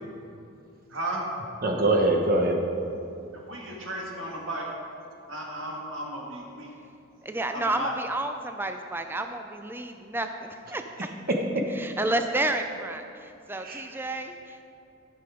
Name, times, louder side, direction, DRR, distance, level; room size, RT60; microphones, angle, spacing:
voice 1, 0.9-1.3 3.3-4.7 5.3-6.7 7.5-8.0, right 1 dB, 65° right, -1 dB, 1.8 m, -34 dB
voice 2, 1.6-2.6 11.0-11.6 13.6-13.9, right 1 dB, 45° right, 2 dB, 1.1 m, -24 dB
voice 3, 7.2-11.1 11.8-14.6, right 2 dB, 10° right, 6 dB, 0.3 m, -31 dB
12.5 x 6.0 x 4.9 m, 2.7 s
head